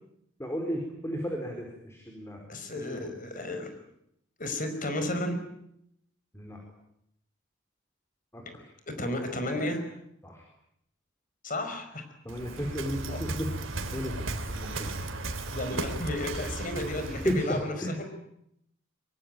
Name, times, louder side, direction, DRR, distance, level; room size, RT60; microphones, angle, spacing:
voice 1, 0.4-2.4 2.9-3.1 6.3-6.6 8.3-8.4 10.2-10.4 12.2-13.5 13.9-14.1 14.5-14.9 16.7-18.0, equal, 15° left, 2 dB, 4.5 m, -33 dB
voice 2, 2.5-3.7 4.4-5.4 8.9-9.9 11.4-12.0 13.1-13.2 15.5-18.0, left 1 dB, 40° left, 7 dB, 5.2 m, -33 dB
Waves surf, 12.3-17.5, right 2 dB, 70° right, 3.2 m, -35 dB
24.5 x 23.0 x 9.1 m, 0.76 s
head